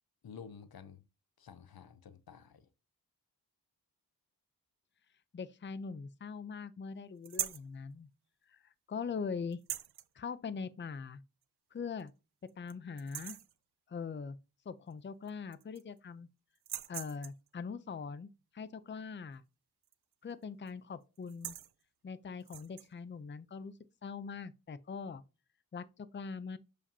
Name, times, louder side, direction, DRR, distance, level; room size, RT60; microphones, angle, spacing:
voice 1, 0.2-1.0 1.4-2.7, left 7 dB, 75° left, 0.6 m, -51 dB
voice 2, 5.3-8.1 8.5-8.6 8.9-9.6 10.2-11.2 11.7-12.1 12.6-13.4 13.9-14.4 14.7-16.3 16.9-19.4 20.2-21.6 22.0-23.7 24.0-25.2 25.7-26.6, left 5 dB, 30° left, 0.5 m, -42 dB
sound 1, 7.2-7.7 9.5-10.1 11.4-11.5 12.0-12.1 12.5-12.7 13.0-13.5 14.9-15.0 15.3-16.0 16.6-17.5 19.8-20.1 20.4-20.7 21.2-21.7 22.4-22.9, right 11 dB, 85° right, 0.5 m, -41 dB
7.0 x 5.0 x 2.7 m
wide cardioid pair, 70°, 37 cm